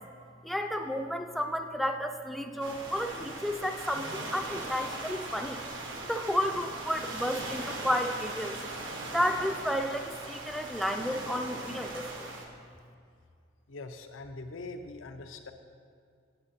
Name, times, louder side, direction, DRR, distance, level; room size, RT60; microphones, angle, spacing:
voice 1, 0.4-5.6 6.1-8.6 9.1-12.3, equal, ahead, 5 dB, 0.4 m, -32 dB
sound 1, 2.6-12.4, right 2 dB, 70° right, 1.1 m, -39 dB
voice 2, 13.7-15.5, left 2 dB, 80° left, 7 dB, 0.6 m, -42 dB
8.5 x 7.9 x 4.2 m, 2.3 s
head